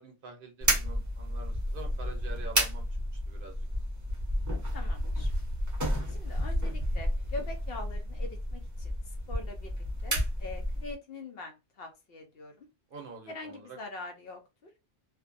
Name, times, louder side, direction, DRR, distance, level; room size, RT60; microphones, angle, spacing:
voice 1, 0.0-2.8 3.3-3.7 12.9-13.8, right 4 dB, 55° right, 3 dB, 0.7 m, -46 dB
sound 1, 0.6-10.9, equal, 20° right, 0.6 m, -31 dB
voice 2, 4.7-5.3 6.1-12.7 13.3-14.7, left 3 dB, 60° left, 4 dB, 0.7 m, -44 dB
2.4 x 2.2 x 2.5 m, 0.25 s
omnidirectional pair, 1.2 m